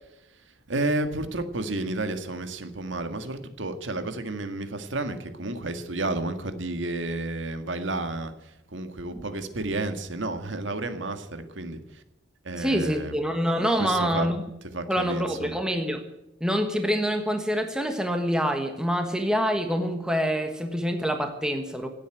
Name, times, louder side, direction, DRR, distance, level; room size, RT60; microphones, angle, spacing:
voice 1, 0.7-8.3 8.7-11.8 12.5-13.2 13.8-14.3 14.6-15.6, right 2 dB, 75° right, 8 dB, 1.8 m, -31 dB
voice 2, 12.5-14.4 14.9-16.0 16.4-21.9, equal, 5° right, 5 dB, 1.3 m, -26 dB
16.5 x 8.5 x 9.0 m, 0.93 s
head